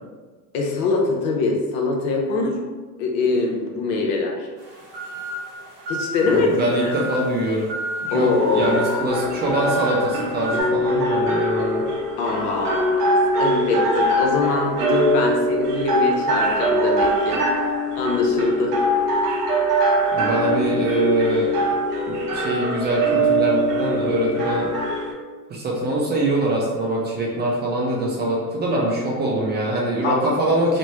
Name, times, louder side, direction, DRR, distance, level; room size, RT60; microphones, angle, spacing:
voice 1, 0.5-2.6 3.0-4.5 5.9-6.9 8.1-9.1 12.2-17.4 18.0-18.7 30.0-30.3, left 3 dB, 55° left, 0 dB, 0.7 m, -23 dB
sound 1, 4.6-10.6, equal, 50° right, 1.0 m, -32 dB
voice 2, 6.3-7.7 8.0-11.9 20.1-21.5 22.1-24.8 25.5-30.8, right 1 dB, 20° right, -2 dB, 0.5 m, -23 dB
sound 2, 8.1-25.1, right 1 dB, 85° right, 0.8 m, -22 dB
3.1 x 2.0 x 2.9 m, 1.3 s
hypercardioid pair, 90°, 46 cm